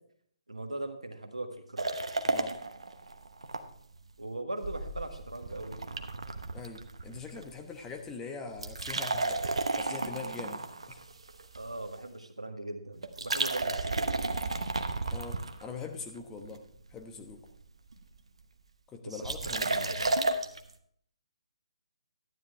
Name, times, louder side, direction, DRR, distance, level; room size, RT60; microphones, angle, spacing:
voice 1, 0.5-1.9 4.2-5.8 11.5-14.3 19.0-20.1, right 2 dB, 85° right, 5 dB, 1.5 m, -39 dB
sound 1, 1.8-3.6 3.9-4.0 4.6-7.5 7.8-8.1 8.5-11.9 13.0-16.0 16.5-17.0 17.3-17.4 17.6-18.2 19.2-20.6, right 3 dB, 70° right, 1.0 m, -33 dB
voice 2, 2.2-2.6 6.5-10.6 10.9-11.0 15.1-16.6 16.9-17.4 18.9-19.9, left 5 dB, 15° left, 3 dB, 1.0 m, -43 dB
12.5 x 9.5 x 3.4 m, 0.65 s
figure-of-eight pair, 140°, 3 cm